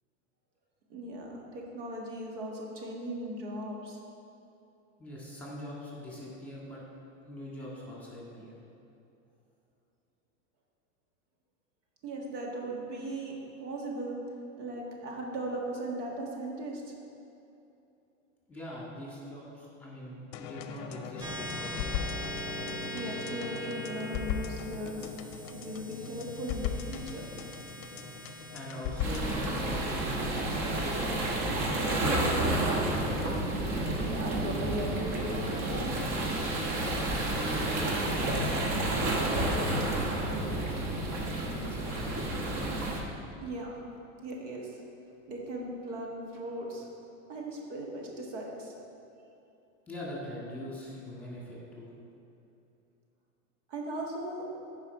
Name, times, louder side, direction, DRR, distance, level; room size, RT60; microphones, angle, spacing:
voice 1, 0.9-4.0 12.0-14.2 14.6-16.9 22.9-25.1 25.4-27.3 33.9-36.0 43.4-43.8 44.2-44.8 45.3-46.9 47.3-48.7 53.7-54.5, right 1 dB, 75° right, -1 dB, 1.7 m, -38 dB
voice 2, 5.0-6.8 7.2-8.6 18.5-21.9 28.0-28.2 28.5-33.0 36.8-39.1 39.4-40.9 41.5-42.6 49.9-51.9, equal, 5° left, -5 dB, 2.0 m, -43 dB
sound 1, 20.3-29.7, left 8 dB, 45° left, 0.6 m, -38 dB
sound 2, 21.2-32.1, equal, 10° right, 0.5 m, -42 dB
sound 3, 29.0-43.0, right 1 dB, 45° right, 1.4 m, -30 dB
10.0 x 4.9 x 4.7 m, 2.7 s
supercardioid pair, 125°, 38 cm